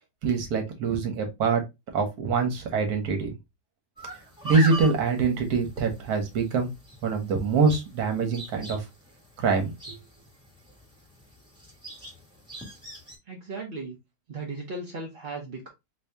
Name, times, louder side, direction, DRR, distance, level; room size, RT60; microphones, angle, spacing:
voice 1, 0.2-1.6 1.9-3.3 4.4-6.7 7.0-8.8 9.4-10.0, right 4 dB, 70° right, 1.4 m, -24 dB
sound 1, 4.0-13.2, right 1 dB, 5° right, 0.8 m, -40 dB
voice 2, 13.3-14.0 14.3-15.7, right 3 dB, 55° right, 0.6 m, -36 dB
3.0 x 2.7 x 3.3 m
omnidirectional pair, 1.8 m